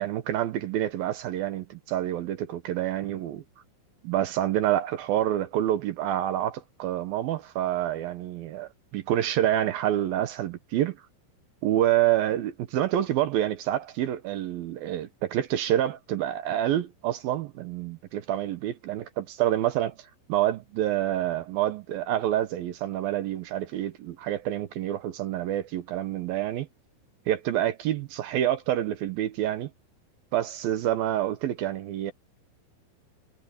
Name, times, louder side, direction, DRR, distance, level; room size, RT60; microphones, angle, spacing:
voice 1, 0.0-3.4 4.0-11.0 11.6-26.7 27.3-29.7 30.3-32.1, right 12 dB, 75° right, 2.3 m, -27 dB
omnidirectional pair, 5.5 m